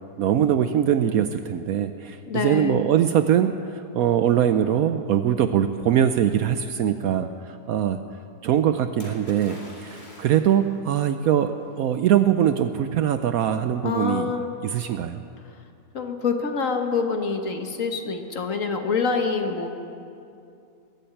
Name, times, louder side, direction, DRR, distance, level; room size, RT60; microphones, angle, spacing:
voice 1, 0.2-8.0 8.4-14.3 14.6-15.2, right 10 dB, 70° right, 9 dB, 0.9 m, -22 dB
voice 2, 2.3-2.9 13.8-14.6 15.9-19.7, left 5 dB, 55° left, 5 dB, 1.4 m, -26 dB
Splash splatter, 9.0-10.8 11.7-11.8, left 1 dB, 25° left, 2.4 m, -45 dB
20.5 x 7.8 x 8.8 m, 2.6 s
omnidirectional pair, 1.8 m